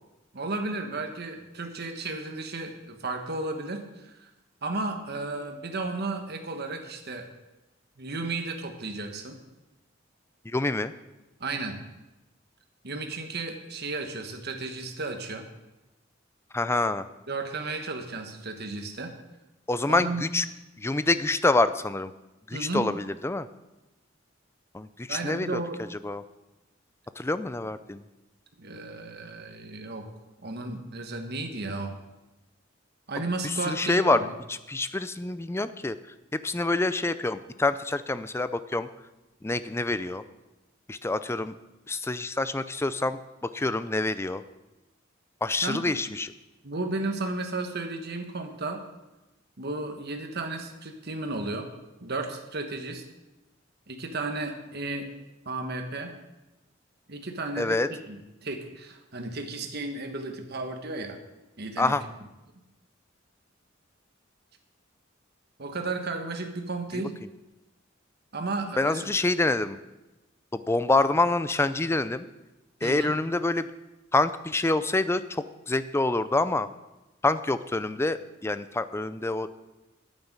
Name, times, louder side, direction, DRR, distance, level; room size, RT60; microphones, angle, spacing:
voice 1, 0.3-4.3 4.6-7.3 8.0-9.4 11.4-11.8 12.8-15.4 17.3-19.1 19.9-20.2 22.5-22.9 25.1-25.8 28.6-30.0 30.4-31.9 33.1-34.3 45.6-45.9 46.6-48.8 49.6-51.7 52.0-53.0 53.9-55.1 55.4-56.1 57.1-57.8 58.1-61.2 61.6-61.9 65.6-67.1 68.3-69.1 72.8-73.1, right 3 dB, 55° right, 4 dB, 1.4 m, -33 dB
voice 2, 10.5-10.9 16.5-17.0 19.7-20.4 20.8-22.1 22.5-23.5 24.7-25.6 26.0-26.2 27.2-28.0 33.4-34.2 34.7-36.0 36.3-38.9 39.4-40.2 40.9-41.6 41.9-43.2 43.5-44.4 45.4-46.3 57.6-57.9 61.8-62.0 66.9-67.0 68.8-69.8 70.5-72.3 72.8-73.7 74.1-76.7 77.2-79.5, left 2 dB, 15° left, 13 dB, 0.4 m, -26 dB
9.4 x 8.9 x 7.4 m, 1.0 s
head